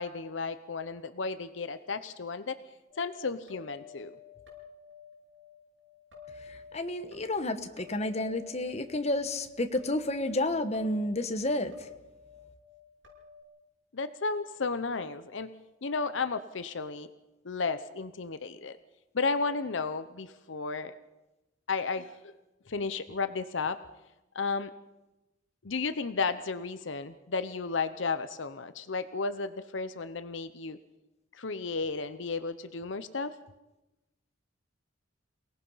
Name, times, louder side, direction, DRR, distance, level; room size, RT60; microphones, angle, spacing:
voice 1, 0.0-2.6 3.0-4.2 13.9-15.5 15.8-17.1 17.4-18.8 19.1-20.9 21.7-22.3 22.7-23.8 24.3-24.7 25.6-30.8 31.3-33.3, left 4 dB, 75° left, 12 dB, 0.8 m, -33 dB
sound 1, 2.9-13.4, left 7 dB, 70° right, 8.0 m, -52 dB
voice 2, 6.7-11.9, left 1 dB, 35° left, 8 dB, 1.3 m, -30 dB
28.5 x 18.5 x 5.7 m, 1.0 s
head